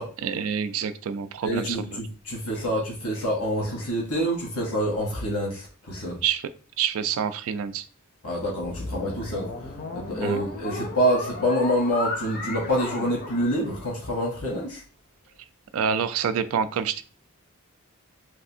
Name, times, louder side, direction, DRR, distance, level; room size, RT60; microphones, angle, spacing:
voice 1, 0.2-2.0 6.2-6.5 6.8-7.9 10.2-10.4 15.7-17.0, right 7 dB, 65° right, 11 dB, 0.3 m, -27 dB
voice 2, 1.4-6.2 8.2-9.5 9.9-14.8, equal, 80° left, -2 dB, 1.0 m, -27 dB
sound 1, 8.6-14.1, left 2 dB, 45° left, 0.6 m, -34 dB
3.2 x 2.4 x 2.7 m, 0.38 s
head